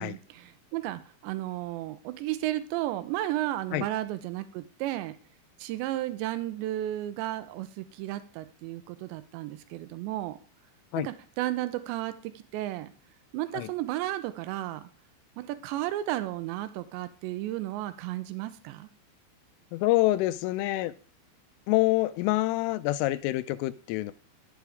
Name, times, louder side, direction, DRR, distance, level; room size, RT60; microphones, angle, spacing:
voice 1, 0.0-5.2 5.6-10.4 11.0-12.9 13.3-14.9 15.4-18.9, right 15 dB, 80° right, 12 dB, 2.7 m, -33 dB
voice 2, 19.7-20.9 21.7-24.1, left 17 dB, 85° left, 15 dB, 3.2 m, -26 dB
11.5 x 8.3 x 3.6 m, 0.40 s
omnidirectional pair, 5.7 m